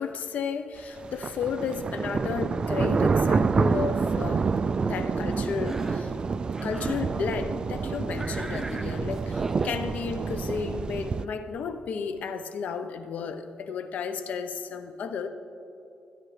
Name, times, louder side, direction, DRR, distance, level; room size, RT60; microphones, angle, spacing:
voice 1, 0.0-4.5 4.8-15.3, left 6 dB, 70° left, 9 dB, 0.8 m, -33 dB
sound 1, 1.0-11.3, right 5 dB, 35° right, 0.3 m, -28 dB
Cough, 5.5-6.1 6.5-7.1 8.2-9.8, right 2 dB, 15° right, 1.0 m, -39 dB
25.5 x 10.0 x 3.3 m, 2.7 s
cardioid pair, 115°, 3 cm